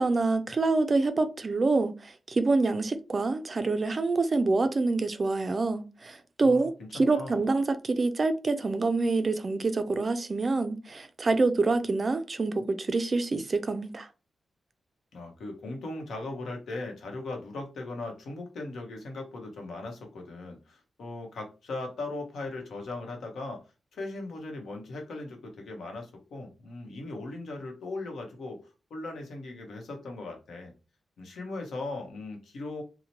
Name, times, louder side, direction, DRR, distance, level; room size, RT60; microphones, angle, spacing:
voice 1, 0.0-14.1, right 3 dB, 35° right, 0.3 m, -26 dB
voice 2, 6.4-7.4 15.1-23.6 23.9-28.6 28.9-30.7 31.2-32.8, left 2 dB, 85° left, 0.9 m, -38 dB
2.9 x 2.0 x 2.8 m
wide cardioid pair, 150°, 0 cm